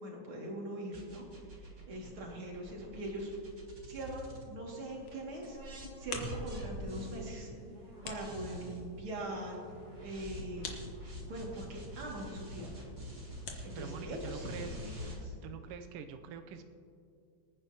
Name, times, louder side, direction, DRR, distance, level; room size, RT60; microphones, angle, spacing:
voice 1, 0.0-3.3 3.8-7.5 8.0-9.6 10.0-10.7 11.3-12.8 13.6-15.3, right 1 dB, 45° right, -2 dB, 3.0 m, -42 dB
sound 1, 0.9-5.0 5.4-15.2, equal, 30° right, 1.8 m, -46 dB
sound 2, 4.8-15.0, left 4 dB, 60° left, 2.1 m, -50 dB
voice 2, 13.7-15.1 15.4-16.7, right 6 dB, 85° right, 7 dB, 1.2 m, -45 dB
25.0 x 9.7 x 2.9 m, 2.5 s
omnidirectional pair, 3.3 m